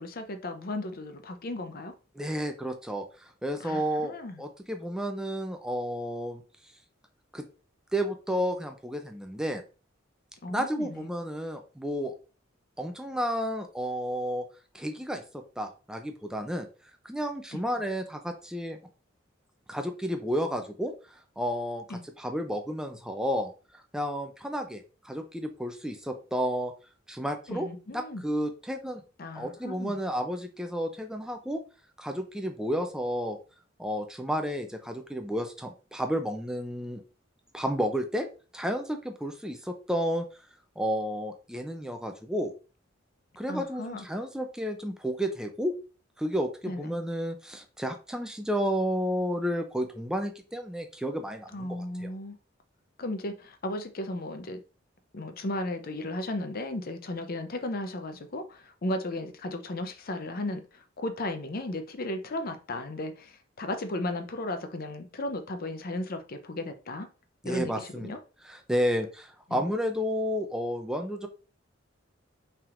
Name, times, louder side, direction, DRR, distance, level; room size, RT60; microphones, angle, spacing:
voice 1, 0.0-1.9 3.6-4.4 10.4-11.0 17.5-17.6 21.9-22.0 27.5-28.2 29.2-30.0 43.5-44.0 46.7-46.9 51.5-52.4 53.0-54.6 55.1-67.1 67.4-68.2 69.5-69.7, left 1 dB, 50° left, 0.6 m, -35 dB
voice 2, 2.2-6.4 7.3-7.5 7.9-9.6 10.5-12.1 12.8-14.5 14.7-16.7 17.0-18.8 19.7-26.7 27.1-27.7 27.9-29.0 29.3-31.6 32.0-33.4 33.8-37.0 37.5-38.3 38.5-40.2 40.8-42.5 43.4-45.8 46.2-52.1 67.4-68.2 68.4-71.3, equal, 5° right, 0.4 m, -31 dB
5.7 x 3.5 x 2.4 m
head